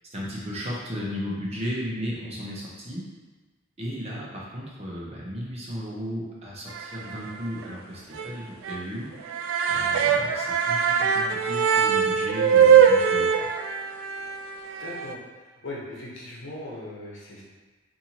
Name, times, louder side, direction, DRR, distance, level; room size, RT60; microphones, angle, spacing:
voice 1, 0.1-3.0 3.8-9.1 9.7-13.4, equal, 30° right, -5 dB, 0.7 m, -35 dB
sound 1, 6.7-7.3 7.6-7.7 8.1-8.3 8.6-8.8 9.1-15.1, right 7 dB, 80° right, 0.3 m, -22 dB
voice 2, 14.8-15.2 15.6-17.4, left 2 dB, 65° left, -5 dB, 0.9 m, -38 dB
4.2 x 2.7 x 2.9 m, 1.3 s
head